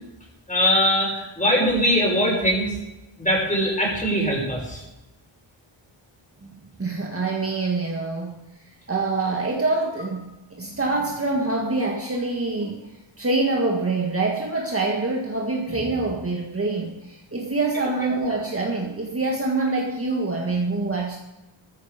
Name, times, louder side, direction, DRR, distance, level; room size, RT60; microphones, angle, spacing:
voice 1, 0.5-2.7 3.2-4.8, equal, 15° left, -2 dB, 6.1 m, -21 dB
voice 2, 6.8-8.3 8.9-12.9 13.2-21.2, right 3 dB, 25° right, -1 dB, 1.7 m, -25 dB
14.5 x 14.0 x 5.1 m, 0.98 s
wide cardioid pair, 135°, 49 cm